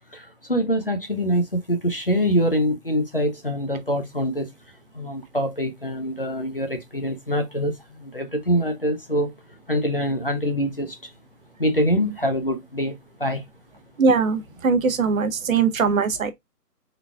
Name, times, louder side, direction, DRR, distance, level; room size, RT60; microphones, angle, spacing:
voice 1, 0.1-4.5 4.9-9.3 9.7-11.0 11.6-13.4, equal, 40° left, 0.4 m, -24 dB
voice 2, 14.0-16.3, right 5 dB, 55° right, 0.8 m, -21 dB
3.8 x 2.3 x 3.3 m
hypercardioid pair, 165°, 48 cm